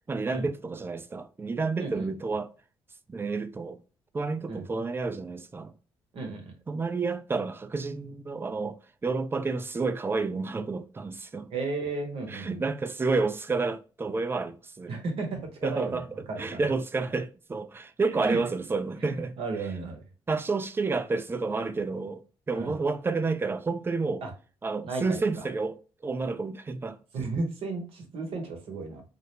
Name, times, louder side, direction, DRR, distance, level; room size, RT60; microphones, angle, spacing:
voice 1, 0.1-2.5 3.1-3.8 4.1-5.7 6.7-8.8 9.0-11.5 12.3-14.9 15.6-16.0 16.4-19.3 20.3-22.2 22.5-24.2 24.6-25.8 26.0-27.0, right 4 dB, 25° right, 0.4 m, -30 dB
voice 2, 1.8-2.2 4.5-4.6 6.1-6.5 11.5-12.6 14.9-16.6 18.2-18.4 19.0-20.0 22.5-22.8 24.2-24.3 24.8-25.4 27.1-29.0, right 3 dB, 70° right, 0.8 m, -34 dB
2.4 x 2.0 x 2.9 m
supercardioid pair, 65°, 10 cm